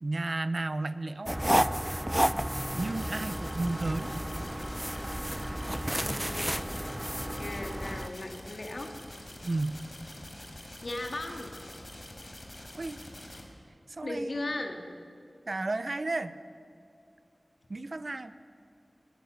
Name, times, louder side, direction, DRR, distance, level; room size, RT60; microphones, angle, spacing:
voice 1, 0.0-1.4 2.8-4.1 9.4-9.8 12.7-13.0 13.9-14.6 15.5-16.3 17.7-18.3, right 2 dB, 60° right, 13 dB, 0.9 m, -33 dB
sound 1, 1.3-8.1, right 1 dB, 10° right, 0.7 m, -31 dB
sound 2, 2.8-13.4, left 1 dB, 40° left, 4.7 m, -46 dB
voice 2, 5.9-6.9 7.3-8.9 10.8-11.5 14.0-14.8, left 2 dB, 65° left, 3 dB, 2.8 m, -37 dB
22.5 x 21.0 x 6.7 m, 2.7 s
wide cardioid pair, 55°, 0 cm